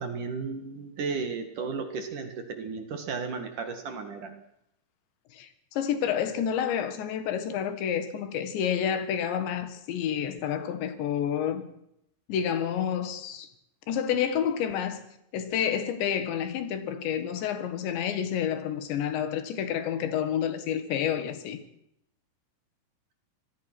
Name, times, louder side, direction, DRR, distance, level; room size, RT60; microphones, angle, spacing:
voice 1, 0.0-4.4, right 5 dB, 55° right, 2.7 m, -34 dB
voice 2, 5.3-11.7 12.3-13.5 13.9-15.0 15.3-21.6, left 8 dB, 75° left, 3.9 m, -29 dB
25.5 x 19.0 x 6.1 m
omnidirectional pair, 5.2 m